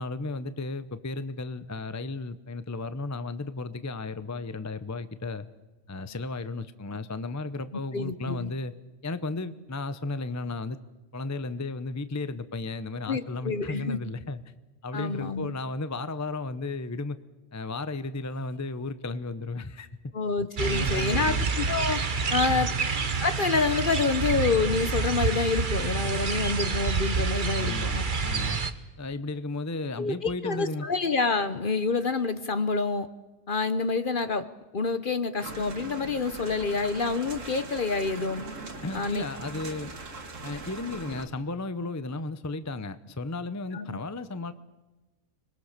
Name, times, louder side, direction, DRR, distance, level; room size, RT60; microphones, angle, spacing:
voice 1, 0.0-5.5 5.9-8.7 9.0-10.8 11.1-14.4 14.8-17.2 17.5-19.9 20.7-21.4 22.5-22.7 27.6-28.6 29.0-30.9 38.8-39.9 40.4-44.5, left 3 dB, 15° left, 12 dB, 0.6 m, -34 dB
voice 2, 7.9-8.5 13.1-14.0 14.9-15.5 20.1-22.0 22.3-22.7 23.2-28.0 30.0-33.1 33.5-34.5 34.7-38.5 38.9-39.2 43.7-44.0, left 4 dB, 45° left, 12 dB, 0.9 m, -27 dB
sound 1, 20.6-28.7, right 5 dB, 40° right, 1.2 m, -28 dB
sound 2, 35.4-41.2, right 3 dB, 65° right, 2.2 m, -41 dB
25.5 x 21.5 x 6.7 m, 1.1 s
omnidirectional pair, 1.5 m